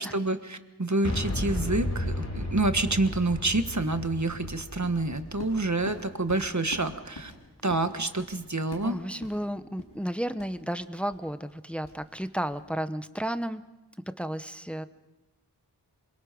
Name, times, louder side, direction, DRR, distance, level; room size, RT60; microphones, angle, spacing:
voice 1, 0.0-7.3 7.6-9.0, right 2 dB, 45° right, 9 dB, 1.5 m, -28 dB
Boom, 1.0-6.9, left 1 dB, 45° left, 3.6 m, -34 dB
sound 1, 3.9-12.7, left 1 dB, 85° left, 6.6 m, -47 dB
voice 2, 8.8-13.6 14.2-14.9, equal, 5° left, 11 dB, 1.0 m, -33 dB
26.5 x 23.5 x 5.3 m, 1.1 s
wide cardioid pair, 40°, 40 cm